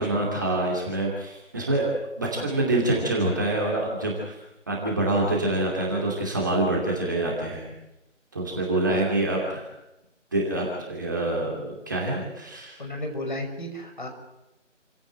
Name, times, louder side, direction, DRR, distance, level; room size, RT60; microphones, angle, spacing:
voice 1, 0.0-4.4 4.7-7.7 8.3-9.7 10.3-12.8, right 2 dB, 15° right, -2 dB, 2.6 m, -26 dB
voice 2, 12.8-14.1, left 1 dB, 40° left, 4 dB, 5.8 m, -33 dB
29.0 x 16.5 x 9.0 m, 0.93 s
figure-of-eight pair, 165°, 38 cm